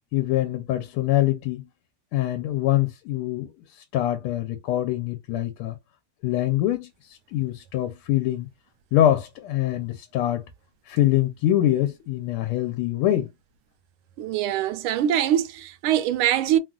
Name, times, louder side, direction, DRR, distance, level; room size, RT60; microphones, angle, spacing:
voice 1, 0.1-1.7 2.1-5.8 6.2-8.5 8.9-10.4 10.9-13.3, left 13 dB, 85° left, 1.5 m, -24 dB
voice 2, 14.2-16.6, right 11 dB, 80° right, 1.4 m, -23 dB
3.5 x 2.3 x 2.2 m
omnidirectional pair, 2.4 m